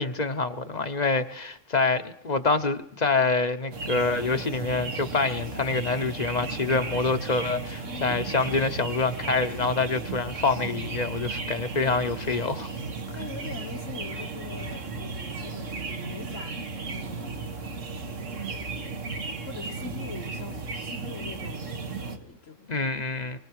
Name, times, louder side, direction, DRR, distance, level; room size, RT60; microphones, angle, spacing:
voice 1, 0.0-12.7 22.7-23.4, left 3 dB, 40° left, 0.9 m, -26 dB
sound 1, 3.7-22.2, right 4 dB, 80° right, 1.9 m, -35 dB
voice 2, 7.7-8.3 13.1-17.6 18.4-18.9 19.4-22.9, left 4 dB, 90° left, 2.3 m, -43 dB
25.0 x 24.0 x 4.8 m
omnidirectional pair, 1.3 m